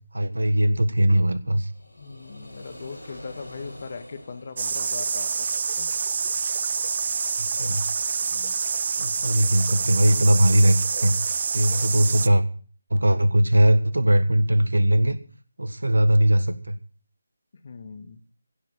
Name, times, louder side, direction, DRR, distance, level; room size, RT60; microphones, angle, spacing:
voice 1, 0.1-1.7 7.6-7.8 9.0-11.1 11.5-12.4 12.9-15.2 15.6-16.8, right 1 dB, 75° right, 13 dB, 1.4 m, -20 dB
sound 1, 1.5-5.6, left 1 dB, 75° left, 6.0 m, -44 dB
voice 2, 2.0-5.9 8.3-8.6 17.6-18.2, left 4 dB, 45° left, 11 dB, 1.8 m, -40 dB
sound 2, 4.6-12.3, right 5 dB, 40° right, 0.5 m, -27 dB
16.0 x 6.7 x 8.8 m, 0.41 s
figure-of-eight pair, 155°, 0 cm